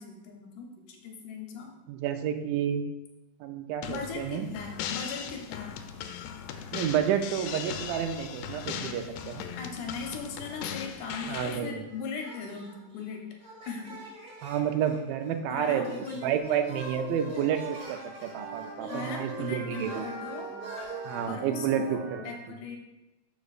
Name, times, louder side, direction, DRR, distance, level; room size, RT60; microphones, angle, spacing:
voice 1, 0.0-1.7 3.9-6.0 9.5-13.3 13.7-14.0 15.5-16.4 18.8-20.5 21.3-22.0 22.2-22.8, left 4 dB, 75° left, 1 dB, 2.1 m, -39 dB
voice 2, 1.9-2.8 3.4-4.5 6.7-9.5 11.3-11.8 14.4-15.9 16.2-20.0 21.1-22.0, right 9 dB, 85° right, 7 dB, 2.4 m, -30 dB
sound 1, 3.8-11.6, left 8 dB, 90° left, 2.3 m, -38 dB
sound 2, 7.9-8.7 9.0-10.3 11.0-21.3, right 1 dB, 40° right, 1.4 m, -48 dB
sound 3, 16.4-22.2, right 3 dB, 65° right, 2.0 m, -41 dB
12.0 x 5.1 x 2.4 m, 1.0 s
omnidirectional pair, 4.0 m